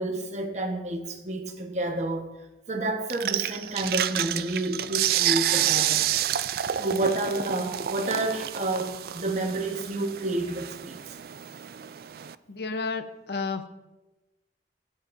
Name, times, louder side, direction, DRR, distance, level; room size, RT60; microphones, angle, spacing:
voice 1, 0.0-2.3 2.7-6.0 6.8-11.1, right 2 dB, 40° right, 1.2 m, -29 dB
sound 1, 3.1-12.3, right 11 dB, 55° right, 0.3 m, -29 dB
voice 2, 12.5-13.7, left 4 dB, 65° left, 0.8 m, -31 dB
17.0 x 10.0 x 2.6 m
head